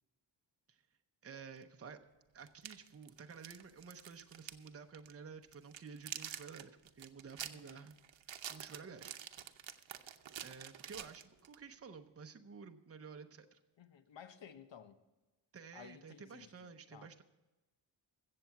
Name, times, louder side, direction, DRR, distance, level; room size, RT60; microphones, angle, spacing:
voice 1, 1.2-2.0 2.3-8.0 8.5-9.2 10.4-13.6 15.5-17.2, right 5 dB, 30° right, 0.7 m, -52 dB
sound 1, 1.6-1.7 2.5-4.7 4.9-5.1 5.5-11.6, right 9 dB, 90° right, 0.8 m, -48 dB
voice 2, 7.5-7.9 13.8-15.0 15.7-17.1, left 7 dB, 80° left, 1.0 m, -56 dB
15.0 x 7.6 x 5.8 m
wide cardioid pair, 175°, 44 cm